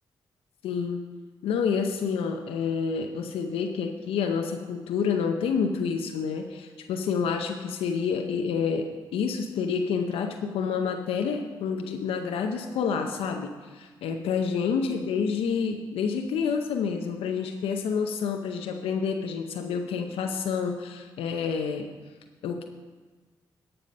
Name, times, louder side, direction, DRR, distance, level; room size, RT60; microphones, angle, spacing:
voice 1, 0.6-1.0 1.4-21.9 22.4-22.6, left 6 dB, 85° left, 4 dB, 0.6 m, -28 dB
13.0 x 5.7 x 5.3 m, 1.4 s
supercardioid pair, 55°, 9 cm